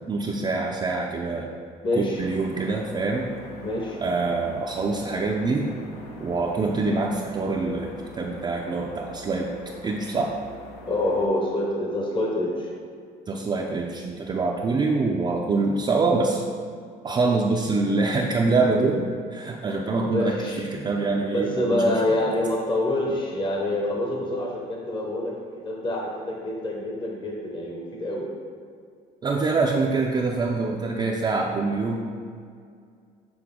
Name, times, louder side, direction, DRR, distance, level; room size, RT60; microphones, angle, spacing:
voice 1, 0.0-1.5 2.0-3.3 4.0-5.7 6.2-9.6 9.8-10.3 13.3-16.4 17.0-22.3 29.2-32.0, right 3 dB, 25° right, -2 dB, 0.5 m, -25 dB
voice 2, 1.8-2.2 3.6-4.0 10.9-12.7 20.1-20.6 21.3-25.3 25.6-28.3, left 1 dB, 30° left, -1 dB, 0.9 m, -26 dB
sound 1, 2.1-11.3, left 1 dB, 75° left, 0.8 m, -44 dB
7.8 x 3.8 x 3.6 m, 2.2 s
cardioid pair, 110°, 17 cm